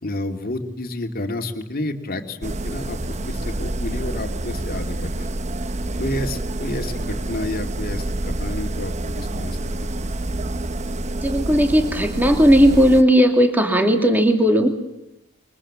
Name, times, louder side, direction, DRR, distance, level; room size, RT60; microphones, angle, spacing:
voice 1, 0.0-3.0 3.3-5.4 6.0-9.6, left 1 dB, 40° left, 5 dB, 2.6 m, -30 dB
sound 1, 2.4-13.0, right 1 dB, 30° right, 0.9 m, -27 dB
voice 2, 11.1-14.7, equal, 10° right, 5 dB, 2.7 m, -16 dB
27.5 x 24.5 x 7.5 m, 0.85 s
head